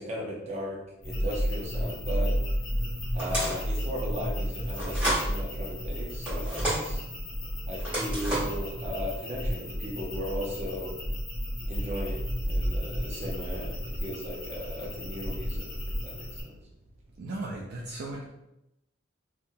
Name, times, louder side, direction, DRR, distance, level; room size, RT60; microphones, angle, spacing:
voice 1, 0.0-2.3 3.1-7.0 7.7-10.9 11.7-16.6, equal, 35° right, -3 dB, 0.7 m, -36 dB
sound 1, 1.0-16.4, equal, 80° left, 1.2 m, -32 dB
sound 2, 3.2-3.7 4.7-5.3 6.2-6.8 7.8-8.6, right 1 dB, 10° right, 1.4 m, -30 dB
voice 2, 17.2-18.2, right 2 dB, 55° right, -2 dB, 0.4 m, -36 dB
3.4 x 2.7 x 2.2 m, 0.88 s
head